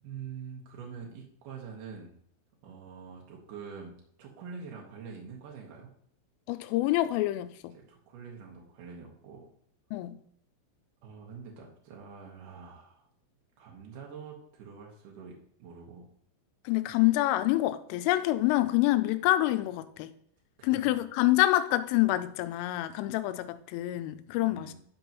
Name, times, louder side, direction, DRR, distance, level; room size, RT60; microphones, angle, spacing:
voice 1, 0.0-2.1 2.6-5.9 7.7-9.5 11.0-13.1 13.6-15.3 15.6-16.0 20.6-21.0 24.4-24.7, right 6 dB, 75° right, 1.9 m, -45 dB
voice 2, 6.5-7.8 9.9-10.2 16.7-20.1 20.6-24.7, left 16 dB, 85° left, 3.1 m, -27 dB
11.5 x 5.3 x 3.0 m
omnidirectional pair, 5.8 m